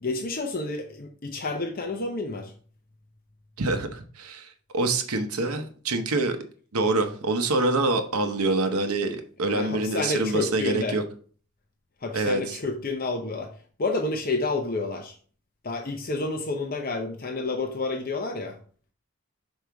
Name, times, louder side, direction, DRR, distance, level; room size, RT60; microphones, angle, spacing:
voice 1, 0.0-2.5 9.5-11.0 12.0-13.5 13.8-15.2 15.6-18.6, left 3 dB, 40° left, 3 dB, 0.6 m, -29 dB
voice 2, 3.6-6.4 6.7-11.0 12.1-12.6, right 2 dB, 85° right, 6 dB, 0.8 m, -26 dB
6.3 x 4.8 x 3.4 m, 0.43 s
head